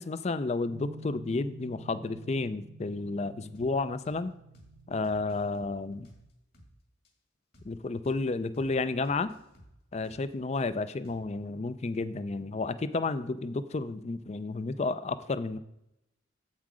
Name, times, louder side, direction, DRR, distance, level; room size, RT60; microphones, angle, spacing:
voice 1, 0.0-4.3 4.9-6.1 7.6-9.3 9.9-15.6, left 3 dB, 35° left, 14 dB, 0.4 m, -31 dB
sound 1, 0.7-6.3, right 1 dB, 60° right, 0.7 m, -50 dB
sound 2, 3.5-3.7 4.0-4.2 4.5-4.7 5.0-6.7 7.0-7.1 7.5-7.7 8.0-8.2 8.5-8.7 9.0-10.6 11.0-11.5, equal, 50° left, 2.0 m, -57 dB
7.5 x 7.5 x 4.8 m, 0.83 s
head